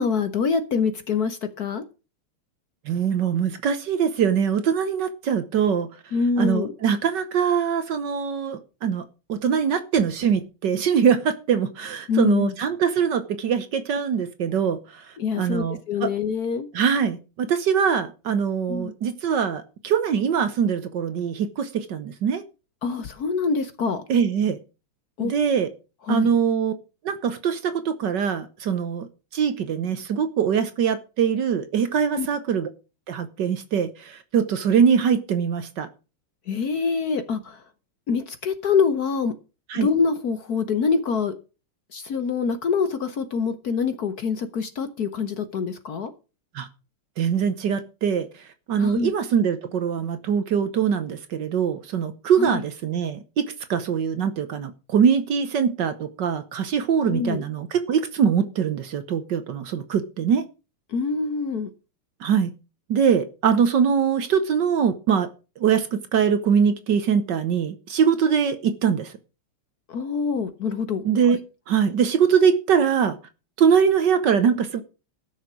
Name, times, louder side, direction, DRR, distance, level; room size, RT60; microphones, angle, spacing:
voice 1, 0.0-1.8 6.1-6.7 12.1-12.5 15.2-16.7 18.7-18.9 22.8-24.0 25.2-25.3 26.1-26.3 32.2-32.3 36.5-37.6 38.1-39.3 39.7-41.3 41.9-46.1 48.8-49.1 52.4-52.6 57.0-57.4 60.9-61.7 69.9-71.4, left 5 dB, 55° left, 1.2 m, -25 dB
voice 2, 2.9-5.9 6.4-9.0 9.3-15.0 15.4-16.1 16.7-22.4 24.1-24.6 25.2-25.7 26.1-26.7 27.0-29.1 29.3-32.7 33.1-35.9 39.7-39.9 46.5-46.7 47.2-48.3 48.7-60.4 62.2-62.5 62.9-65.3 65.6-69.1 71.0-71.4 71.7-73.2 73.6-74.8, right 7 dB, 60° right, 1.4 m, -22 dB
14.0 x 6.5 x 6.1 m
omnidirectional pair, 2.4 m